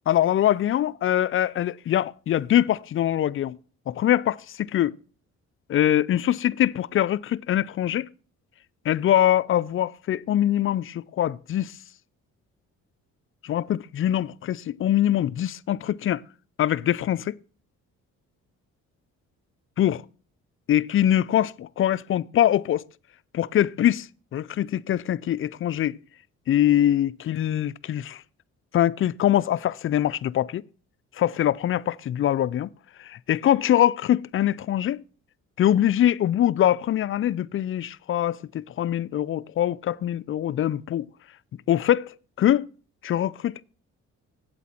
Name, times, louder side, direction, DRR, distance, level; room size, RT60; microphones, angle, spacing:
voice 1, 0.1-3.6 3.9-5.0 5.7-8.1 8.9-11.7 13.4-16.2 16.6-17.3 19.8-20.0 20.7-22.9 23.3-24.1 24.3-26.0 26.5-28.2 28.7-30.6 31.2-32.7 33.0-35.0 35.6-41.1 41.7-42.7 43.0-43.6, left 11 dB, 45° left, 0.4 m, -23 dB
8.3 x 8.2 x 4.3 m
cardioid pair, 90°, 30 cm